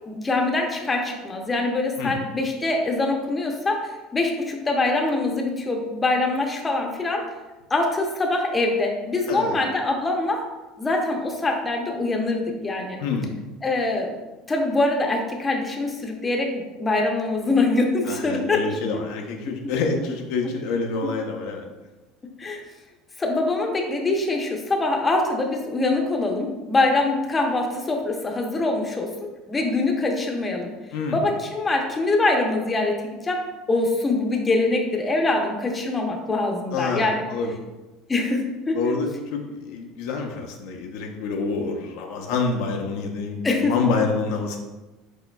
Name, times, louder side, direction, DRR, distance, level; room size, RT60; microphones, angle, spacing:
voice 1, 0.1-7.2 7.7-10.4 10.8-13.0 13.6-14.2 14.5-18.6 22.4-22.6 23.2-29.1 29.5-30.7 31.1-37.2 38.1-38.8 43.4-43.7, left 2 dB, 20° left, 1 dB, 0.8 m, -24 dB
voice 2, 9.3-9.6 13.0-13.3 18.1-21.7 30.9-31.2 36.7-37.5 38.7-44.6, left 4 dB, 75° left, 2 dB, 0.6 m, -27 dB
4.8 x 4.3 x 2.3 m, 1.1 s
supercardioid pair, 105°, 0 cm